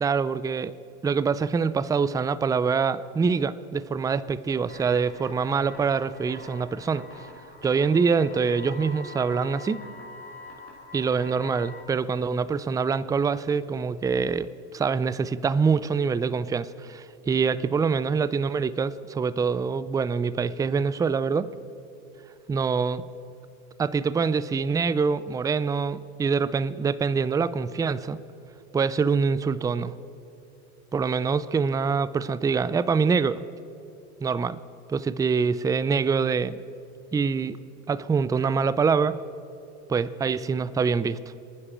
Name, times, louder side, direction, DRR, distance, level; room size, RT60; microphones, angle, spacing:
voice 1, 0.0-0.7 1.0-7.0 7.6-9.9 10.9-21.5 22.5-23.0 23.8-28.2 28.7-29.9 30.9-33.4 34.2-34.6 34.9-36.6 37.1-37.6 37.9-39.2 39.9-41.2, right 5 dB, 10° right, 15 dB, 0.4 m, -25 dB
sound 1, 4.7-11.8, left 3 dB, 40° left, 3.2 m, -45 dB
25.0 x 9.9 x 4.4 m, 2.8 s
supercardioid pair, 90°, 35 cm